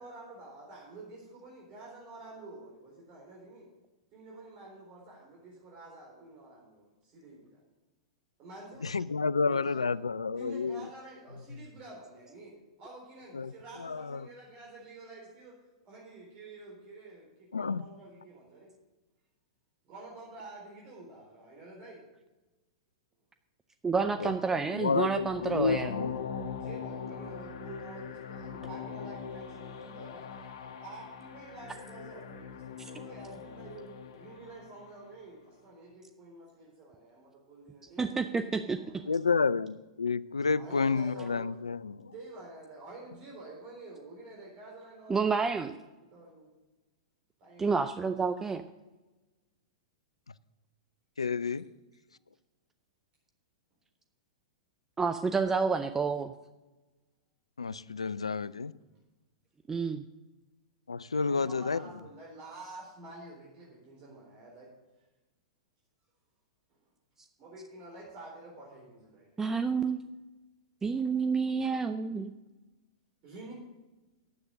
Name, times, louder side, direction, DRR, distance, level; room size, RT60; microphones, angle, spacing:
voice 1, 0.0-3.7 4.1-7.6 8.4-8.9 9.5-9.9 10.3-18.8 19.8-22.1 26.4-30.3 30.6-39.1 40.5-41.6 42.1-45.6 46.1-46.5 47.4-47.9 61.2-64.7 65.0-65.1 67.4-69.3 73.2-73.5, right 2 dB, 40° right, -3 dB, 4.0 m, -49 dB
voice 2, 8.8-10.8 13.4-13.5 13.8-14.2 17.5-17.8 24.0-24.3 24.7-26.2 39.1-42.0 51.2-51.6 57.6-58.7 60.9-61.8, left 4 dB, 85° left, 20 dB, 0.4 m, -30 dB
voice 3, 23.8-25.9 32.8-32.9 38.0-38.8 45.1-45.7 47.6-48.6 55.0-56.3 59.7-60.0 69.4-70.0 70.8-72.3, right 5 dB, 15° right, 9 dB, 0.5 m, -29 dB
sound 1, 24.9-35.0, left 6 dB, 55° left, 1.2 m, -41 dB
10.0 x 8.0 x 6.5 m, 1.1 s
hypercardioid pair, 105°, 3 cm